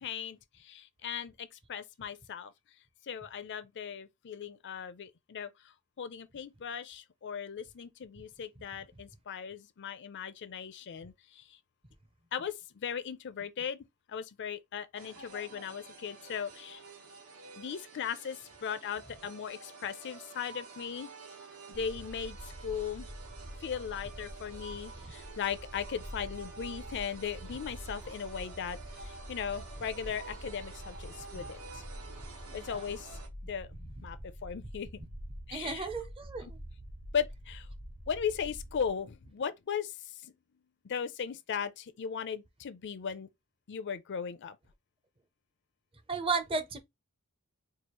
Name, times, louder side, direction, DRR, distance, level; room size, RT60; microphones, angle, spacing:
voice 1, 0.0-2.5 3.0-11.6 12.3-16.8 17.6-21.1 21.7-23.1 23.6-31.8 32.5-35.0 35.5-35.9 36.4-36.5 37.1-37.7 38.1-40.3 40.8-43.3 43.7-44.6, left 7 dB, 50° left, 0.5 m, -38 dB
sound 1, 15.0-33.3, right 4 dB, 75° right, 1.2 m, -50 dB
sound 2, 21.7-38.9, equal, 45° right, 1.1 m, -46 dB
voice 2, 32.5-32.8 35.5-36.6 46.1-46.8, right 4 dB, 25° right, 0.6 m, -34 dB
4.7 x 2.4 x 3.0 m
head